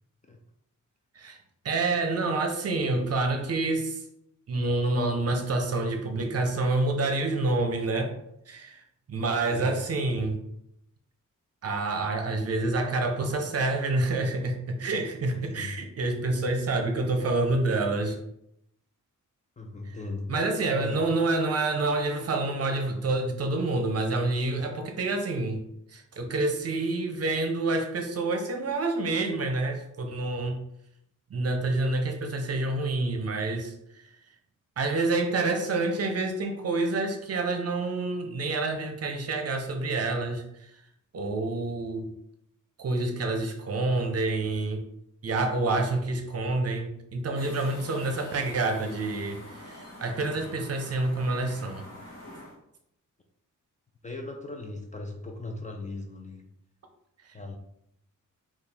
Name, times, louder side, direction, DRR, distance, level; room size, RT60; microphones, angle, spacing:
voice 1, 1.6-4.0 4.5-8.1 8.5-8.8 9.1-10.4 11.6-18.2 19.9-20.0 20.3-25.6 25.9-30.6 31.3-34.1 34.8-40.7 41.1-42.1 42.8-44.8 45.2-51.8 57.2-57.3, right 2 dB, 50° right, 4 dB, 0.7 m, -28 dB
voice 2, 9.3-9.7 15.3-15.7 19.6-20.3 20.7-21.0 50.3-50.5 54.0-56.4 57.3-57.6, left 2 dB, 25° left, 3 dB, 0.4 m, -38 dB
sound 1, 47.3-52.6, left 1 dB, 50° left, 1.5 m, -46 dB
4.3 x 2.4 x 3.4 m, 0.77 s
wide cardioid pair, 135°, 32 cm